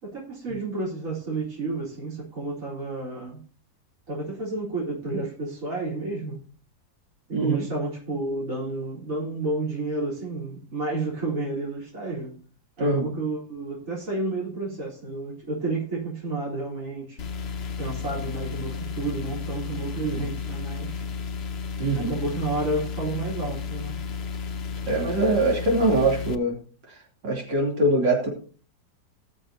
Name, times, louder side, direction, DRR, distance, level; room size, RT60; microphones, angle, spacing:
voice 1, 0.0-3.4 4.1-6.4 7.3-12.4 12.8-17.2 17.8-21.0 21.9-23.9, right 2 dB, 40° right, -7 dB, 4.2 m, -31 dB
voice 2, 7.3-7.6 12.8-13.1 21.8-22.2 24.9-26.6 26.9-27.0 27.2-28.3, right 2 dB, 70° right, 0 dB, 3.8 m, -23 dB
sound 1, 17.2-26.4, left 6 dB, 50° left, 0.7 m, -33 dB
19.5 x 6.7 x 2.8 m, 0.39 s
omnidirectional pair, 2.0 m